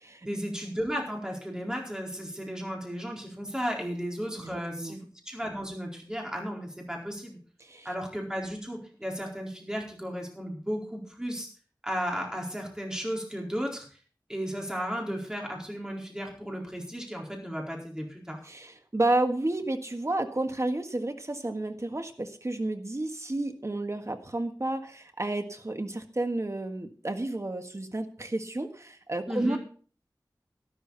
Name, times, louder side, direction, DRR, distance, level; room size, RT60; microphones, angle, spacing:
voice 1, 0.2-7.4 7.8-11.5 11.8-13.8 14.3-18.4 29.3-29.6, equal, 10° right, -1 dB, 4.3 m, -34 dB
voice 2, 4.4-5.0 7.6-7.9 18.4-29.6, right 2 dB, 40° right, 6 dB, 1.7 m, -31 dB
12.5 x 12.0 x 4.1 m, 0.42 s
wide cardioid pair, 60°, 8 cm